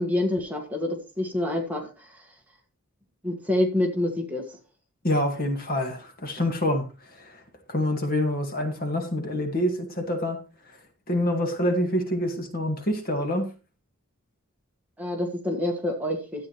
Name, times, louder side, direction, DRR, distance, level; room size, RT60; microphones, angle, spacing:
voice 1, 0.0-2.2 3.2-4.4 15.0-16.5, left 1 dB, 5° right, 1.7 m, -27 dB
voice 2, 5.0-7.4 7.7-10.4 10.7-10.8 11.1-13.5, left 1 dB, 40° left, 2.0 m, -26 dB
13.0 x 8.6 x 3.2 m
head